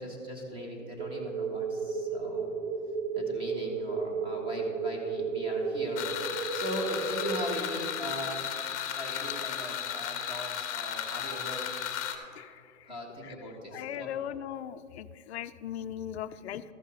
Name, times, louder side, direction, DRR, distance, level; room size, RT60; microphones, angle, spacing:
voice 1, 0.0-2.5 3.1-6.1 6.5-8.6 8.9-11.6 12.8-14.1, equal, 15° right, -1 dB, 1.5 m, -39 dB
sound 1, 1.0-7.4, right 5 dB, 35° right, 0.7 m, -33 dB
sound 2, 6.0-12.2, left 9 dB, 30° left, 0.9 m, -35 dB
voice 2, 13.7-16.6, left 10 dB, 55° left, 11 dB, 0.5 m, -38 dB
14.0 x 5.5 x 5.0 m, 2.4 s
hypercardioid pair, 150°, 38 cm